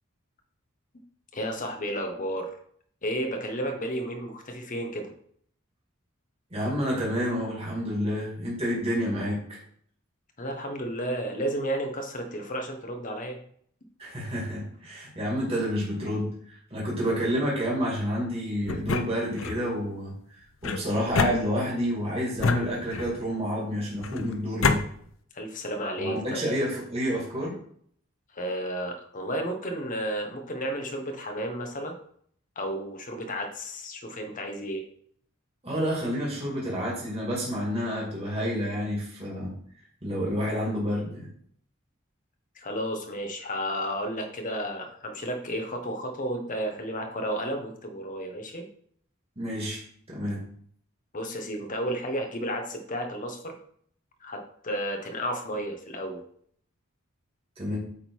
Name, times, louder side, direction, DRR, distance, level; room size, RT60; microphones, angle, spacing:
voice 1, 1.3-2.6 3.0-5.1 10.4-13.4 25.3-26.4 28.3-31.9 32.6-34.8 42.5-48.7 51.1-53.5 54.2-56.2, equal, 40° left, 4 dB, 1.2 m, -32 dB
voice 2, 6.5-9.6 14.0-16.3 16.7-20.1 20.6-24.8 26.0-27.5 35.6-39.5 40.0-41.3 49.4-49.8 50.1-50.4 57.6-57.8, equal, 30° right, -4 dB, 2.2 m, -29 dB
sound 1, 18.7-19.6 20.6-21.9 22.4-23.3 24.0-24.8, left 4 dB, 75° left, 0.6 m, -28 dB
8.7 x 3.8 x 4.7 m, 0.63 s
head